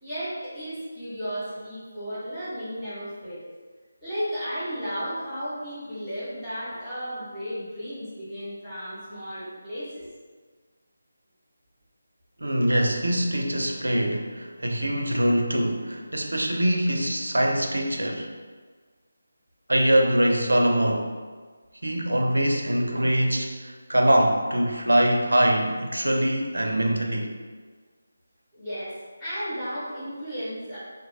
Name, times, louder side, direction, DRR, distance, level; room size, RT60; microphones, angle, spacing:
voice 1, 0.0-3.4 4.0-10.0 28.5-30.8, equal, 10° left, -15 dB, 0.8 m, -34 dB
voice 2, 12.4-18.3 19.7-21.1 21.8-27.3, right 1 dB, 70° right, 2 dB, 0.4 m, -23 dB
2.8 x 2.3 x 2.7 m, 1.5 s
figure-of-eight pair, 155°, 0 cm